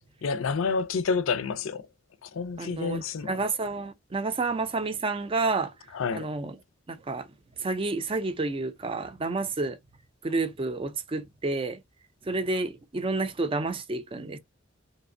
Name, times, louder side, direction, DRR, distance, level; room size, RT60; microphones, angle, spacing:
voice 1, 0.2-1.9 2.2-3.4 5.9-6.3, left 5 dB, 80° left, 0.5 m, -29 dB
voice 2, 2.6-5.7 6.1-6.6 6.9-7.3 7.6-9.8 10.2-11.8 12.3-14.4, right 3 dB, 25° right, 0.4 m, -30 dB
3.2 x 2.8 x 2.6 m
head